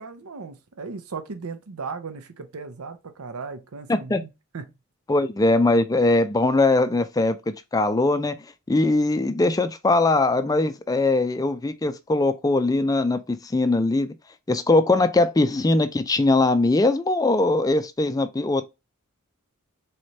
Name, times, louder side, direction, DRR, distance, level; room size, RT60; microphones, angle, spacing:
voice 1, 0.0-4.7, right 4 dB, 90° right, 0.7 m, -37 dB
voice 2, 3.9-4.2 5.1-7.4 7.7-8.3 8.7-14.1 14.5-18.6, left 2 dB, 15° left, 0.4 m, -21 dB
4.2 x 3.2 x 2.6 m
head